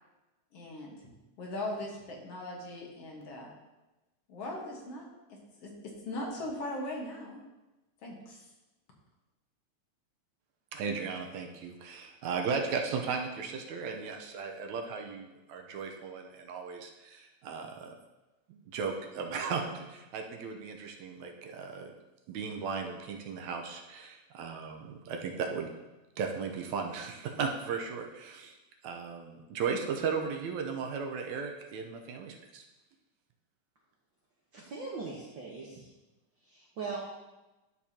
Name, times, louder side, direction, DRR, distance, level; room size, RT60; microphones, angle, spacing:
voice 1, 0.5-0.9 1.4-3.5 4.3-7.4 8.0-8.5, left 1 dB, 60° left, -1 dB, 2.3 m, -39 dB
voice 2, 10.7-17.9 18.5-21.9 22.3-25.7 26.2-28.6 28.8-32.6, right 5 dB, 75° right, 2 dB, 2.1 m, -36 dB
voice 3, 34.5-35.9 36.4-37.0, right 4 dB, 55° right, -4 dB, 1.4 m, -40 dB
12.0 x 7.0 x 2.8 m, 1.1 s
omnidirectional pair, 3.3 m